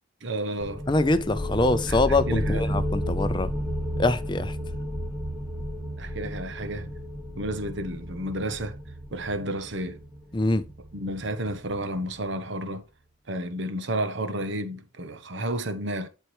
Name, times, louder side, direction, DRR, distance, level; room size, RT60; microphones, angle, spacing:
voice 1, 0.2-0.8 1.9-2.0 2.3-2.6 6.0-6.9 7.4-8.8 9.1-10.0 10.9-12.8 13.3-16.1, right 1 dB, 55° right, 0.9 m, -31 dB
sound 1, 0.6-12.0, equal, 5° right, 1.6 m, -32 dB
voice 2, 0.9-3.5 4.0-4.6 10.3-10.6, left 2 dB, 20° left, 0.5 m, -24 dB
11.0 x 4.6 x 3.1 m
head